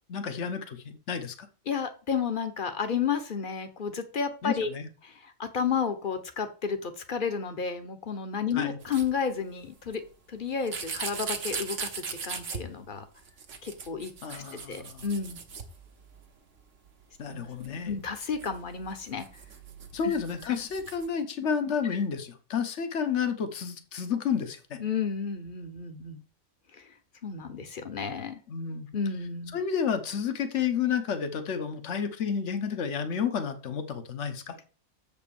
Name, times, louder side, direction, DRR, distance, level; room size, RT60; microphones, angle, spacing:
voice 1, 0.1-1.5 4.4-4.9 8.5-8.8 14.2-15.0 17.2-18.0 19.9-24.8 28.5-28.9 29.5-34.5, left 7 dB, 60° left, 8 dB, 1.4 m, -31 dB
voice 2, 1.7-4.7 5.0-10.0 10.3-13.0 13.6-15.4 17.3-19.3 20.0-20.2 20.5-20.6 24.8-26.2 26.7-26.8 27.2-28.4 28.9-29.6, left 6 dB, 40° left, 9 dB, 1.2 m, -32 dB
sound 1, 8.8-9.1 9.9-10.0 10.6-12.6 13.2-16.2 16.6-16.7 16.9-17.0 17.6-21.1, right 5 dB, 60° right, 1.5 m, -39 dB
7.3 x 5.2 x 7.1 m, 0.36 s
omnidirectional pair, 1.4 m